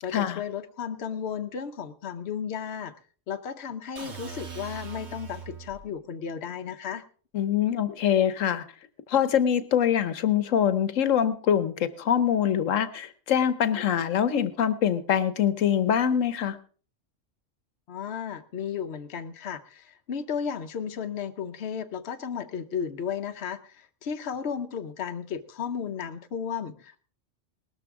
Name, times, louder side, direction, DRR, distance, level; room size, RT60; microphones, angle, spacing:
voice 1, 0.0-2.9 3.3-7.0 17.9-27.0, left 7 dB, 60° left, 7 dB, 1.1 m, -34 dB
sound 1, 4.0-5.9, right 6 dB, 60° right, 1.9 m, -41 dB
voice 2, 7.3-8.6 9.1-16.6, left 9 dB, 90° left, 12 dB, 1.2 m, -24 dB
19.0 x 13.0 x 3.6 m, 0.41 s
omnidirectional pair, 1.3 m